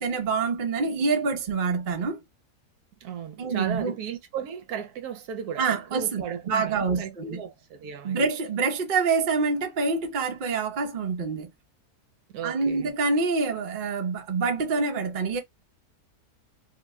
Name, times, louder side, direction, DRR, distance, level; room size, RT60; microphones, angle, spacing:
voice 1, 0.0-2.2 3.4-3.9 5.6-7.4 8.0-11.5 12.4-15.4, right 4 dB, 50° right, 0.5 m, -26 dB
voice 2, 3.0-8.2 12.3-12.9, right 8 dB, 75° right, 1.1 m, -35 dB
2.8 x 2.1 x 3.5 m
omnidirectional pair, 1.7 m